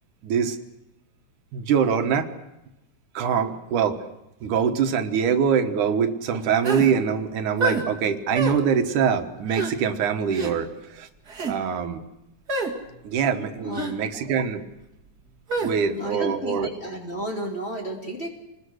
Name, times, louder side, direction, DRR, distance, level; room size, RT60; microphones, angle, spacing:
voice 1, 0.2-0.6 1.5-2.3 3.1-4.0 4.4-11.1 11.5-12.0 13.0-14.6 15.6-16.7, right 7 dB, 85° right, 7 dB, 2.8 m, -24 dB
sound 1, 6.6-6.9 7.6-7.8 8.3-8.6 9.5-9.7 10.3-10.5 11.3-11.5 12.5-12.7 13.7-13.9 15.5-15.7, right 3 dB, 35° right, 2.3 m, -26 dB
voice 2, 15.9-18.3, equal, 20° left, 0 dB, 3.2 m, -32 dB
27.5 x 20.5 x 6.5 m, 0.91 s
omnidirectional pair, 3.5 m